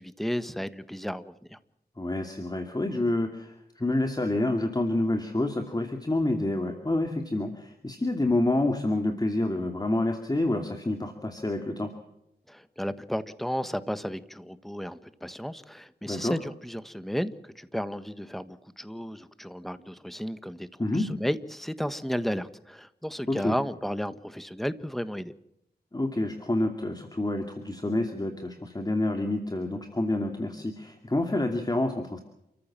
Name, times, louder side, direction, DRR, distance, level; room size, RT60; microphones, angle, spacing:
voice 1, 0.0-1.6 12.5-25.3, equal, ahead, 13 dB, 1.4 m, -33 dB
voice 2, 2.0-11.9 16.1-16.4 20.8-21.1 23.3-23.5 25.9-32.2, left 2 dB, 25° left, 5 dB, 2.6 m, -28 dB
29.5 x 14.5 x 7.5 m, 0.81 s
wide cardioid pair, 70°, 17 cm